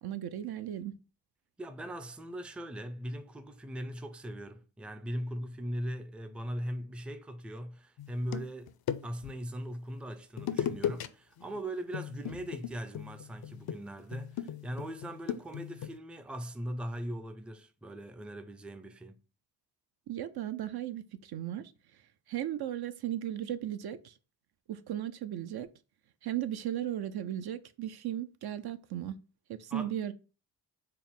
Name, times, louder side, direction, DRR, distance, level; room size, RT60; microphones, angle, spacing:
voice 1, 0.0-0.9 20.1-21.7 22.3-24.1 24.7-25.7 26.2-29.2 29.5-30.1, right 11 dB, 55° right, 0.5 m, -36 dB
voice 2, 1.6-8.7 9.0-19.2 29.7-29.9, equal, 5° right, 0.4 m, -40 dB
sound 1, 8.0-9.4 10.4-11.1 11.4-11.6 11.9-16.0, left 9 dB, 55° left, 0.5 m, -37 dB
4.4 x 2.1 x 3.6 m
supercardioid pair, 50°, 45 cm